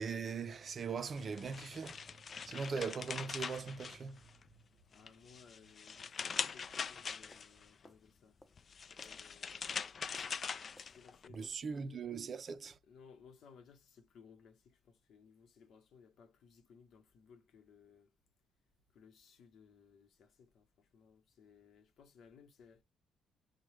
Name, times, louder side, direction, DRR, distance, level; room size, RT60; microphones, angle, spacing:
voice 1, 0.0-2.1 2.4-4.2 11.3-12.8, right 5 dB, 45° right, 0.5 m, -40 dB
sound 1, 1.2-4.5 4.9-7.7 8.6-11.3, left 6 dB, 45° left, 0.3 m, -42 dB
voice 2, 4.9-8.4 8.9-10.3 10.9-12.2 12.8-18.2 18.9-22.8, left 6 dB, 70° left, 0.9 m, -62 dB
sound 2, 6.2-11.9, left 1 dB, 10° left, 0.7 m, -64 dB
6.2 x 2.2 x 3.2 m
cardioid pair, 90°, 0 cm